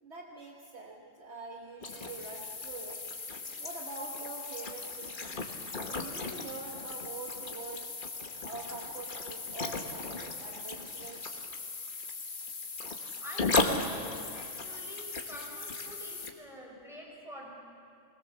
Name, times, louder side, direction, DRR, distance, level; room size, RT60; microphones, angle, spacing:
voice 1, 0.0-3.0 3.6-5.4 5.8-8.0 8.4-11.5, right 3 dB, 55° right, 0 dB, 1.7 m, -45 dB
sound 1, 1.8-16.3, left 3 dB, 40° left, 1.3 m, -36 dB
voice 2, 13.2-17.5, equal, ahead, -4 dB, 5.8 m, -46 dB
21.0 x 19.5 x 7.1 m, 2.5 s
omnidirectional pair, 1.4 m